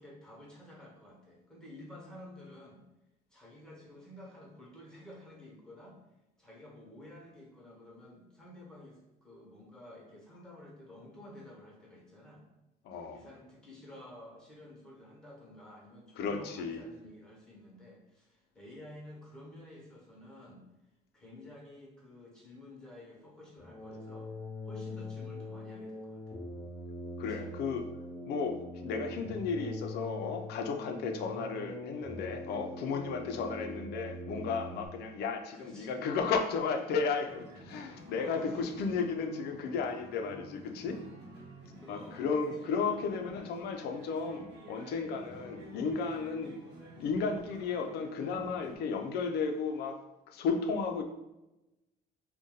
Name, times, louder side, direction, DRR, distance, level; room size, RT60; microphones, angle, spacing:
voice 1, 0.0-2.8 3.3-6.0 6.4-12.4 13.1-20.6 21.1-24.3 24.6-26.2 27.2-27.5 35.5-36.0 38.1-39.0 41.8-42.3 42.6-42.7, left 1 dB, 5° left, -3 dB, 1.1 m, -51 dB
voice 2, 12.8-13.2 16.2-16.8 27.2-27.8 28.2-41.0 41.9-46.6 47.0-51.0, left 5 dB, 75° left, 6 dB, 0.4 m, -34 dB
sound 1, 23.6-34.9, left 2 dB, 25° left, 0.8 m, -43 dB
sound 2, 37.3-48.8, equal, 85° right, 0.9 m, -51 dB
2.6 x 2.2 x 3.8 m, 0.96 s
cardioid pair, 110°, 17 cm